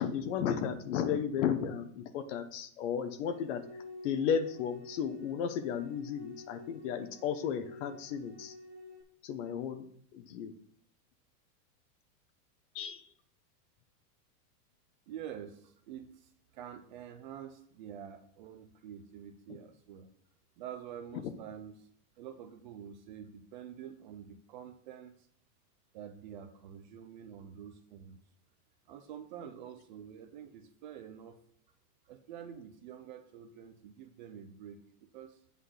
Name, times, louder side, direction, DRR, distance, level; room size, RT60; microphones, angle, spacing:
voice 1, 0.0-3.6 4.0-8.5 9.2-9.8 10.1-10.5 12.7-13.0 21.2-21.3, left 7 dB, 50° left, 11 dB, 0.9 m, -34 dB
sound 1, 3.2-9.0, left 2 dB, 20° left, 1.7 m, -50 dB
voice 2, 15.1-20.1 20.6-21.9 22.2-25.3 25.9-28.2 28.9-31.4 32.1-35.4, right 9 dB, 35° right, 7 dB, 0.4 m, -47 dB
8.2 x 3.8 x 6.4 m, 0.65 s
supercardioid pair, 160°, 46 cm